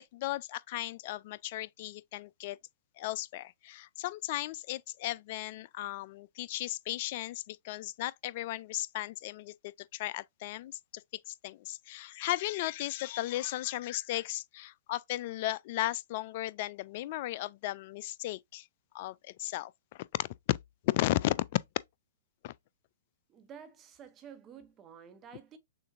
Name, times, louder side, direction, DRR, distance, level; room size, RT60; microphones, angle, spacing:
voice 1, 0.0-2.6 3.0-18.7 18.9-20.6 20.8-21.4 22.4-22.5, left 16 dB, 45° left, 0.3 m, -35 dB
voice 2, 23.3-25.6, right 8 dB, 25° right, 1.0 m, -51 dB
6.3 x 2.6 x 2.5 m
figure-of-eight pair, 115°, 0 cm